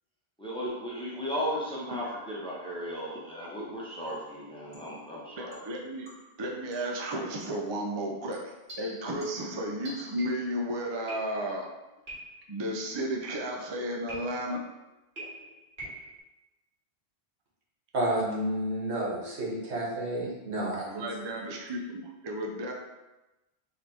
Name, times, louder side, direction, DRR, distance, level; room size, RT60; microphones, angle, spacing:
voice 1, 0.4-5.6, equal, 5° left, -5 dB, 0.8 m, -35 dB
sound 1, 4.0-4.3 4.7-5.0 5.5-6.4 6.7-7.0 7.4-7.6 8.3-10.6 11.1-11.6 12.1-12.6 14.1-14.7 15.2-16.2, right 1 dB, 70° right, 1.9 m, -46 dB
voice 2, 5.4-6.1 6.4-11.6 12.5-14.6 20.9-22.7, right 1 dB, 35° right, 0 dB, 0.4 m, -33 dB
voice 3, 17.9-21.0, right 1 dB, 85° right, -4 dB, 1.5 m, -30 dB
4.3 x 2.6 x 4.1 m, 1.0 s
omnidirectional pair, 1.1 m